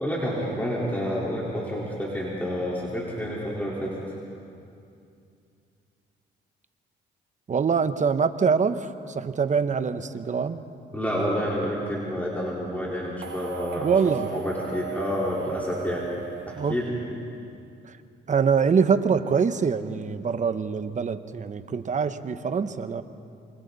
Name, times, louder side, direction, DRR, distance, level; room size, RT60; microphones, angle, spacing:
voice 1, 0.0-3.9 10.9-16.1 16.5-16.9, equal, 10° left, -6 dB, 4.2 m, -29 dB
voice 2, 7.5-10.6 13.8-14.3 16.6-16.8 17.8-17.9 18.3-23.0, right 6 dB, 40° right, 11 dB, 1.0 m, -24 dB
sound 1, 13.2-17.4, right 9 dB, 60° right, 1.0 m, -38 dB
27.5 x 24.5 x 4.2 m, 2.5 s
cardioid pair, 90°, 20 cm